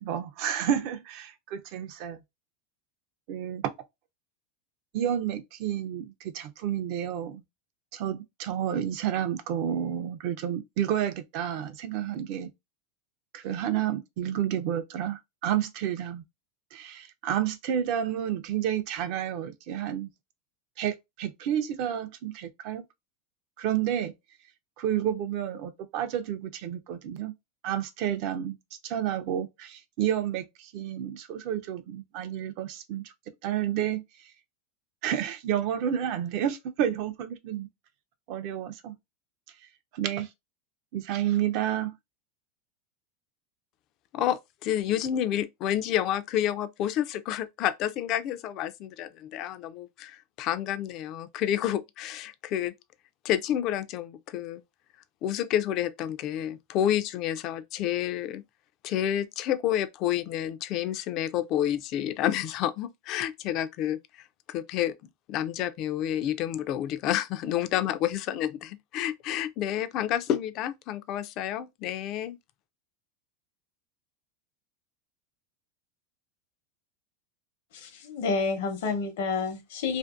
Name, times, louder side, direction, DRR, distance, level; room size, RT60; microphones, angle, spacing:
voice 1, 0.0-2.2 3.3-3.7 4.9-7.4 7.9-12.5 13.3-16.2 16.7-20.1 20.8-22.8 23.6-24.1 24.8-27.3 27.6-28.6 28.8-33.0 33.4-34.0 35.0-37.7 38.3-38.9 39.9-40.3 40.9-41.9, right 10 dB, 55° right, 0.4 m, -30 dB
voice 2, 44.1-52.7 53.2-54.6 55.2-58.4 58.8-64.9 65.3-72.4, left 11 dB, 45° left, 0.3 m, -29 dB
voice 3, 77.7-80.0, left 4 dB, 75° left, 0.8 m, -29 dB
2.5 x 2.5 x 2.4 m
supercardioid pair, 145°, 0 cm